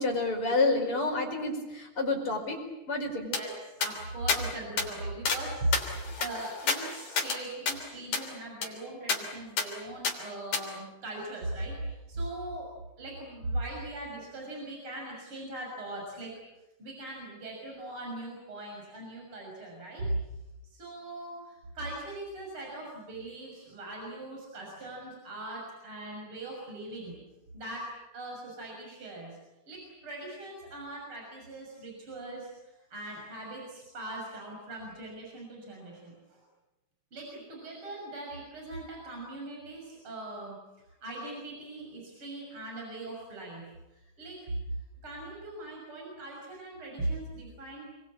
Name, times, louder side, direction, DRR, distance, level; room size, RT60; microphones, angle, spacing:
voice 1, 0.0-2.6 2.9-3.3, left 3 dB, 45° left, 2 dB, 5.8 m, -29 dB
voice 2, 3.2-5.7 6.0-11.8 12.1-12.7 13.0-16.3 16.8-20.2 20.6-27.2 27.5-29.4 29.7-36.4 37.1-40.6 41.0-44.4 45.0-48.0, right 1 dB, 45° right, -1 dB, 7.2 m, -39 dB
hat loop, 3.3-3.4 3.8-3.9 4.3-4.4 4.8-4.9 5.3-5.4 5.7-7.4 7.7-7.8 8.1-8.3 8.6-8.7 9.1-9.2 9.6-9.7 10.0-10.2 10.5-10.6, left 5 dB, 85° left, 4.7 m, -30 dB
28.5 x 22.5 x 8.7 m, 0.98 s
omnidirectional pair, 3.4 m